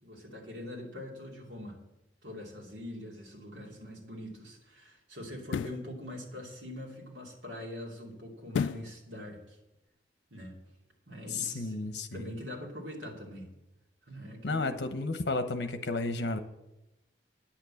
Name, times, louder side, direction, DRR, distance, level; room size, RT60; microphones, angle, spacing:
voice 1, 0.0-1.8 2.2-9.6 10.3-10.6 11.1-11.8 12.1-13.5 14.1-14.8, left 1 dB, 80° right, -1 dB, 2.7 m, -43 dB
sound 1, 3.5-3.7 5.4-5.9 8.5-9.0 9.4-9.5, left 6 dB, 85° left, 0.3 m, -32 dB
voice 2, 11.3-12.3 14.4-16.4, left 3 dB, 70° left, 9 dB, 0.9 m, -32 dB
10.0 x 6.0 x 8.6 m, 0.95 s
head